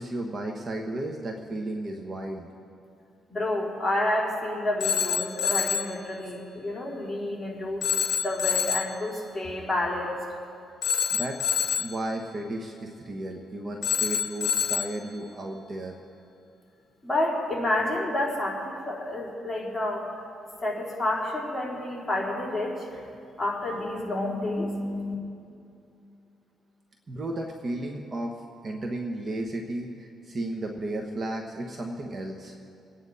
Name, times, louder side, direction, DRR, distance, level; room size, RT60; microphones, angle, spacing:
voice 1, 0.0-2.5 11.1-16.0 27.1-32.5, right 1 dB, 35° right, 2 dB, 1.3 m, -34 dB
voice 2, 3.3-7.8 8.2-10.2 17.0-20.0 20.6-23.0 23.4-25.1, left 1 dB, 10° left, -5 dB, 4.1 m, -29 dB
Telephone, 4.8-6.0 7.8-9.0 10.8-12.0 13.8-15.0, left 7 dB, 60° left, 1.0 m, -27 dB
27.0 x 9.7 x 4.1 m, 2.6 s
cardioid pair, 90°, 0 cm